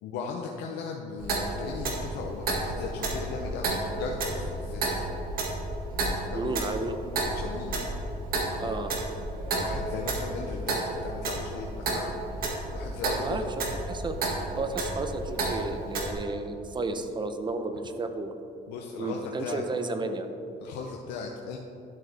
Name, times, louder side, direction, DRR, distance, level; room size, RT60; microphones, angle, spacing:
voice 1, 0.0-5.0 6.3-6.6 7.3-7.8 9.6-12.1 12.7-13.5 18.7-19.6 20.6-21.6, left 5 dB, 90° left, 1 dB, 0.7 m, -37 dB
Clock, 1.2-16.1, right 2 dB, 60° right, 1.8 m, -32 dB
voice 2, 6.3-7.0 8.6-8.9 13.2-18.3 19.0-20.3, right 3 dB, 25° right, 7 dB, 0.7 m, -33 dB
11.5 x 7.5 x 3.4 m, 2.9 s
cardioid pair, 110°, 17 cm